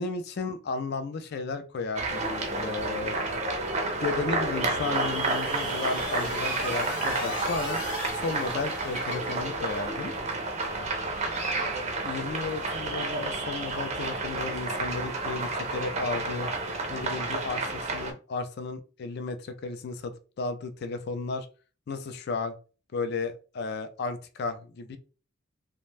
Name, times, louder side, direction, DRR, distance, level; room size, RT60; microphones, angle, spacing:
voice 1, 0.0-3.2 3.6-7.8 8.1-10.1 12.0-16.5 16.9-21.5 21.9-22.5 22.9-25.0, left 4 dB, 50° left, 0.4 m, -34 dB
sound 1, 2.0-18.1, right 2 dB, 35° right, 0.5 m, -30 dB
sound 2, 4.4-10.0, left 1 dB, 80° left, 1.0 m, -39 dB
2.5 x 2.1 x 3.2 m
head